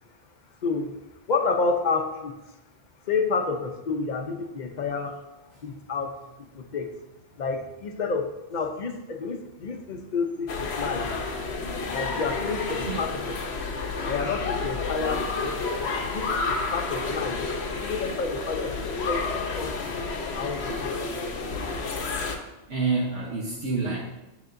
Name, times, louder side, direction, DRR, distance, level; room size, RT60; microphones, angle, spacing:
voice 1, 0.6-1.0 1.3-2.3 3.1-5.1 5.6-6.1 6.5-6.9 7.4-11.1 11.9-13.6 14.0-15.5 16.1-17.5 17.8-19.3 19.6-20.0 20.3-20.9 21.7-21.8, left 4 dB, 45° left, 5 dB, 0.8 m, -30 dB
sound 1, 10.5-22.4, left 3 dB, 65° left, 1.1 m, -30 dB
voice 2, 22.7-24.0, right 4 dB, 75° right, -4 dB, 1.3 m, -27 dB
7.9 x 7.0 x 2.6 m, 0.97 s
omnidirectional pair, 1.2 m